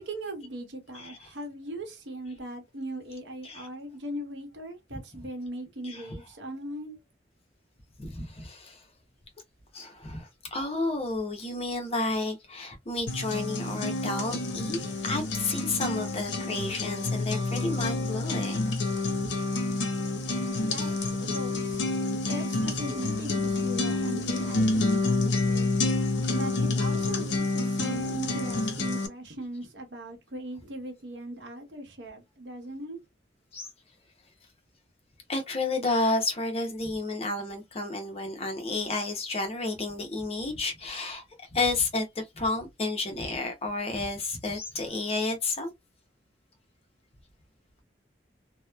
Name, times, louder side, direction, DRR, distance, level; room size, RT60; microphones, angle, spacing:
voice 1, 0.0-6.9 20.6-21.8 22.3-25.7 26.3-33.0, right 1 dB, 75° right, 0.9 m, -39 dB
voice 2, 0.9-1.3 3.4-3.7 5.8-6.1 8.0-8.8 9.7-18.7 20.8-21.0 21.3-21.4 23.9-24.0 25.3-25.4 33.5-33.7 35.3-45.7, left 2 dB, 35° left, 0.6 m, -31 dB
sound 1, 13.1-29.1, left 2 dB, 75° left, 0.6 m, -28 dB
2.9 x 2.0 x 2.2 m
head